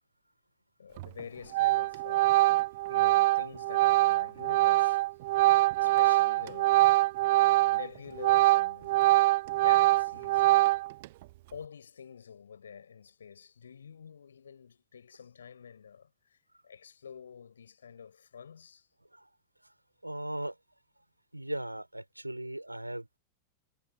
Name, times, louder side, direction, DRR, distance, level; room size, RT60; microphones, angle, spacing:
voice 1, 0.8-2.5 2.9-5.0 5.8-6.9 7.4-9.0 9.5-10.7 11.5-16.4 16.6-18.9, left 7 dB, 70° left, 6.9 m, -47 dB
Organ, 1.0-1.2 1.5-7.9 8.2-11.1, right 18 dB, 50° right, 0.3 m, -24 dB
voice 2, 20.0-20.6 21.3-23.2, right 1 dB, 85° right, 4.7 m, -38 dB
figure-of-eight pair, 90°, 0 cm